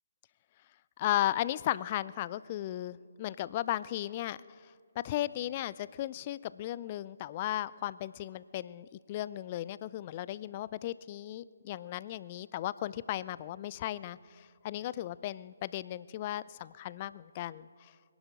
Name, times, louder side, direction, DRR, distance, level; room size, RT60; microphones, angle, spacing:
voice 1, 1.0-4.4 5.0-17.9, left 13 dB, 30° left, 19 dB, 0.4 m, -35 dB
25.0 x 11.0 x 5.2 m, 2.3 s
figure-of-eight pair, 140°, 0 cm